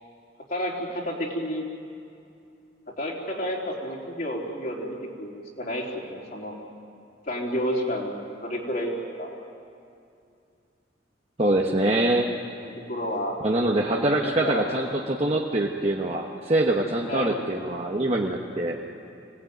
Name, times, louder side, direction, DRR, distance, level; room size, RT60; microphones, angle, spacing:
voice 1, 0.5-1.6 2.9-6.6 7.3-9.3 12.6-13.4 14.2-14.7 17.1-17.4, equal, 50° left, -3 dB, 3.9 m, -31 dB
voice 2, 11.4-12.3 13.4-18.8, right 1 dB, 35° right, 0 dB, 1.2 m, -24 dB
25.5 x 18.0 x 9.4 m, 2.5 s
head